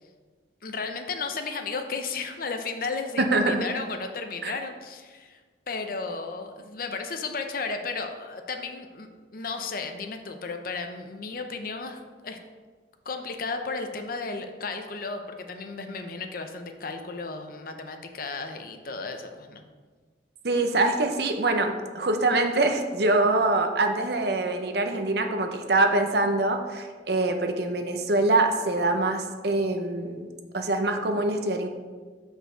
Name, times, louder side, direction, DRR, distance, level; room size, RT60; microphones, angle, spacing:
voice 1, 0.6-5.4 5.7-12.4 13.1-19.6, left 4 dB, 50° left, 6 dB, 0.6 m, -34 dB
voice 2, 3.2-3.7 4.4-4.5 20.4-31.7, right 2 dB, 55° right, 6 dB, 0.7 m, -24 dB
6.4 x 5.3 x 5.0 m, 1.5 s
head